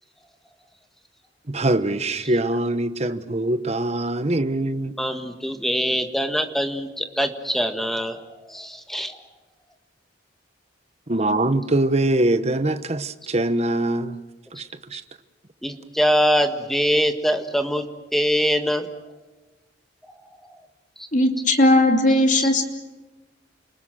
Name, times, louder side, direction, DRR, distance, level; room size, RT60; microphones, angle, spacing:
voice 1, 1.5-4.9 11.1-14.2 14.5-14.6 14.9-15.0, right 1 dB, 35° right, 1.1 m, -23 dB
voice 2, 5.0-9.2 14.9-15.0 15.6-17.9 18.1-18.9 20.4-20.6 21.0-21.1 22.4-22.5, equal, ahead, 1.6 m, -23 dB
voice 3, 21.1-22.6, left 1 dB, 45° left, 2.9 m, -17 dB
29.5 x 20.0 x 7.6 m
head